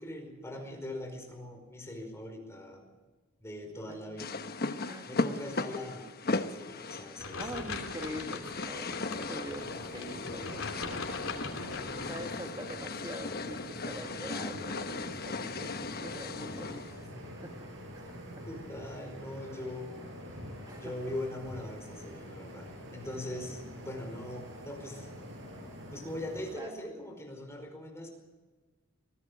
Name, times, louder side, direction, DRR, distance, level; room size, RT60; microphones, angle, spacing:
voice 1, 0.0-2.9 3.4-4.3 5.1-7.5 18.5-19.9 20.8-25.1 25.9-28.1, left 1 dB, 15° left, 3 dB, 5.1 m, -41 dB
sound 1, 4.2-17.0, left 3 dB, 50° left, 1.1 m, -37 dB
voice 2, 4.9-5.4 6.8-6.9 7.4-11.2 12.0-17.7 17.9-18.4 20.7-20.9 26.0-26.1 26.6-26.7, right 1 dB, 20° right, 2 dB, 1.7 m, -44 dB
sound 2, 7.2-12.2, left 3 dB, 85° left, 3.1 m, -41 dB
sound 3, 9.6-26.5, equal, 65° right, 7.0 m, -46 dB
24.0 x 17.5 x 6.4 m, 1.3 s
head